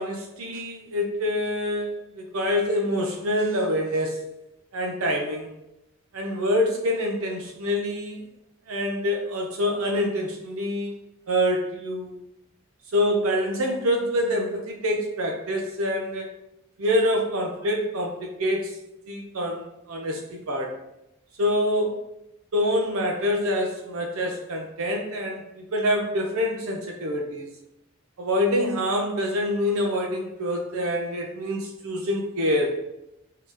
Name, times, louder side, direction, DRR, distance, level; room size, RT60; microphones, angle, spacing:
voice 1, 0.0-4.4 4.7-5.6 6.1-8.2 8.7-11.0 11.3-12.2 12.9-16.3 16.8-18.8 19.1-20.7 21.4-22.0 22.5-27.5 28.2-32.8, left 1 dB, 85° right, 1 dB, 0.6 m, -26 dB
3.6 x 2.8 x 4.7 m, 0.88 s
head